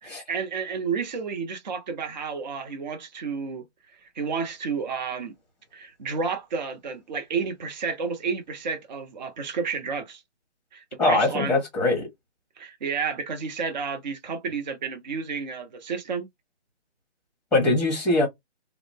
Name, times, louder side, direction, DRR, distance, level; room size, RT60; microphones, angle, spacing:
voice 1, 0.0-3.6 3.9-5.3 5.7-10.2 10.7-11.6 12.6-16.3, right 5 dB, 40° right, 0.5 m, -31 dB
voice 2, 11.0-12.1 17.5-18.3, left 2 dB, ahead, 0.9 m, -22 dB
2.4 x 2.0 x 3.2 m
figure-of-eight pair, 140°, 35 cm